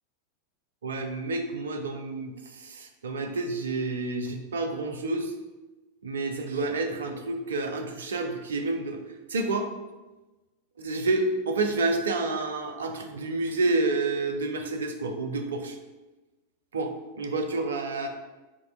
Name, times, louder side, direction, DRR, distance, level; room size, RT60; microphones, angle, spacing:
voice 1, 0.8-5.3 6.0-9.0 9.3-9.7 10.8-15.8 16.7-18.1, right 3 dB, 65° right, 6 dB, 0.4 m, -29 dB
5.1 x 2.1 x 2.5 m, 1.1 s
figure-of-eight pair, 90°, 0 cm